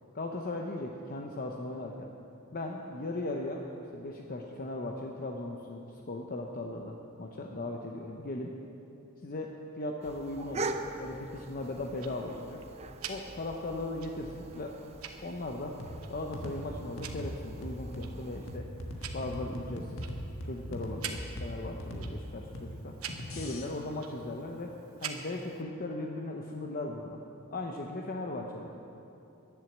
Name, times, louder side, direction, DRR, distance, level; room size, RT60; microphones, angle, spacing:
voice 1, 0.1-2.1 2.5-3.7 3.9-8.5 9.2-12.6 13.1-14.8 15.2-15.8 16.1-18.7 19.1-20.0 20.4-23.0 23.3-27.2 27.5-28.7, left 2 dB, 45° left, 1 dB, 0.8 m, -38 dB
sound 1, 10.0-18.6, right 3 dB, 30° right, 0.6 m, -43 dB
Tick-tock, 11.6-25.6, right 7 dB, 85° right, 1.0 m, -48 dB
sound 2, 15.8-23.6, equal, 70° left, 1.5 m, -40 dB
10.5 x 10.5 x 7.3 m, 2.9 s
head